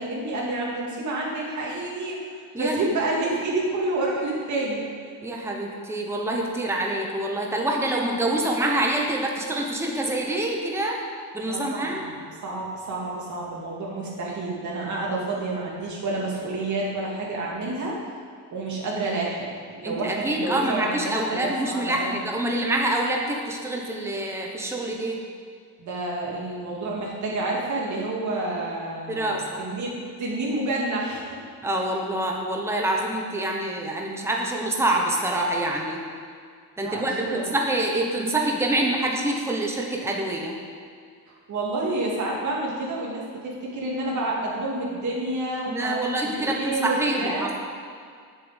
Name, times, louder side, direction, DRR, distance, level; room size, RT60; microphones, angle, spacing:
voice 1, 0.0-2.2 2.6-4.8 11.4-12.1 12.4-18.0 18.5-22.2 25.8-29.9 30.2-31.3 36.8-37.5 41.3-47.5, right 2 dB, 45° right, -3 dB, 2.6 m, -29 dB
voice 2, 2.5-2.9 5.2-11.0 11.3-12.0 19.8-25.2 29.1-29.6 31.6-36.0 36.8-40.5 45.7-47.6, right 1 dB, 5° right, 0 dB, 1.1 m, -26 dB
7.8 x 7.3 x 8.1 m, 2.1 s
cardioid pair, 165°, 41 cm